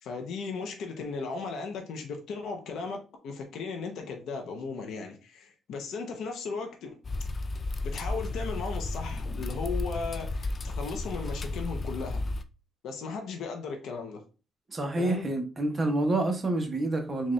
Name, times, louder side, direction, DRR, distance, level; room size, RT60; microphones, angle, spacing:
voice 1, 0.0-7.0 7.8-12.2 12.8-14.2 15.0-15.3, left 4 dB, 80° left, 0.7 m, -36 dB
sound 1, 7.0-12.4, left 2 dB, 35° left, 0.4 m, -33 dB
voice 2, 14.7-17.3, right 2 dB, 30° right, 0.9 m, -28 dB
4.2 x 2.4 x 3.2 m
cardioid pair, 90°, 0 cm